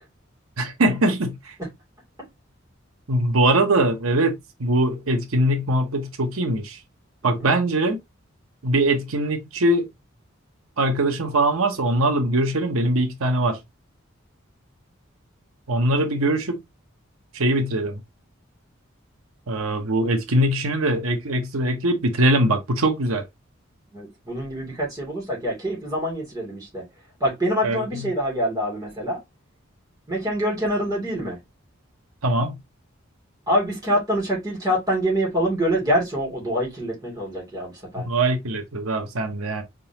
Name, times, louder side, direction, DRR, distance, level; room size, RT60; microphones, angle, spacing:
voice 1, 0.6-1.5 3.1-6.8 7.2-8.0 8.6-9.9 10.8-13.6 15.7-16.6 17.3-18.0 19.5-23.2 27.6-28.1 32.2-32.6 38.0-39.6, right 1 dB, 85° right, 0.9 m, -22 dB
voice 2, 23.9-26.8 27.2-29.2 30.1-31.4 33.5-38.0, equal, 15° right, 2.7 m, -25 dB
4.8 x 3.7 x 2.9 m
head